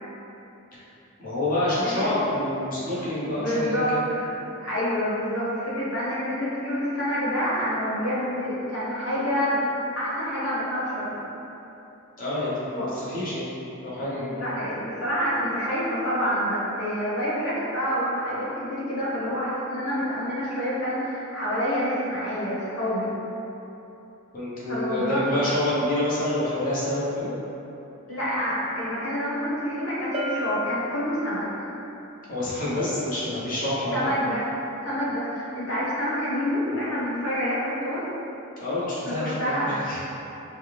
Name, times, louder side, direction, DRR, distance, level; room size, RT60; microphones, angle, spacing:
voice 1, 1.2-4.0 12.2-13.5 13.8-14.3 24.3-27.3 32.3-34.1 38.6-40.0, left 1 dB, 40° left, -9 dB, 1.1 m, -27 dB
voice 2, 3.4-4.3 4.6-9.6 10.0-11.2 12.8-12.9 14.3-23.1 24.7-25.3 28.1-31.4 33.9-34.5 34.8-38.1 39.0-39.8, equal, 80° left, -8 dB, 1.2 m, -27 dB
Bell, 30.1-31.7, left 1 dB, 25° right, 0.4 m, -32 dB
4.8 x 2.2 x 3.4 m, 3.0 s
head